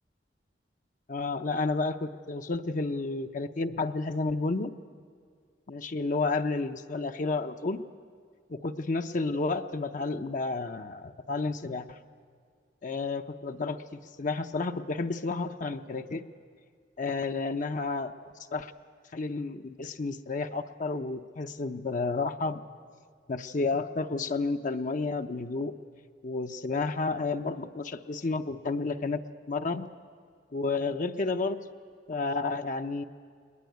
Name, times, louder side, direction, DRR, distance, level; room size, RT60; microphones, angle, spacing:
voice 1, 1.1-4.7 5.7-7.8 8.5-12.0 12.8-16.2 17.0-18.1 18.5-18.7 19.1-22.6 23.3-25.7 26.2-29.2 29.5-29.9 30.5-31.6 32.1-33.0, left 3 dB, 50° left, 6 dB, 0.7 m, -31 dB
21.0 x 21.0 x 9.3 m, 2.1 s
head